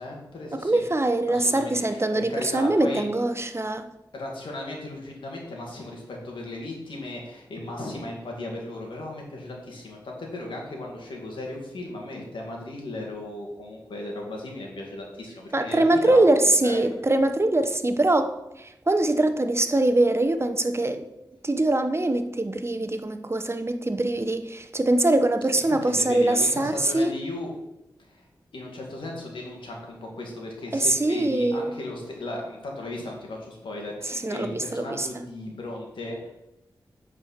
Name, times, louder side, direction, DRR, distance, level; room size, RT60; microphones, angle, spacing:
voice 1, 0.0-0.8 1.3-3.1 4.1-16.3 16.6-16.9 25.8-27.5 28.0-28.2 28.5-36.3, left 2 dB, 90° left, 2.0 m, -36 dB
voice 2, 0.5-3.9 15.5-21.0 21.4-27.2 30.7-31.8 34.1-35.1, right 2 dB, 30° right, 0.8 m, -23 dB
8.5 x 4.8 x 5.8 m
cardioid pair, 40°, 8 cm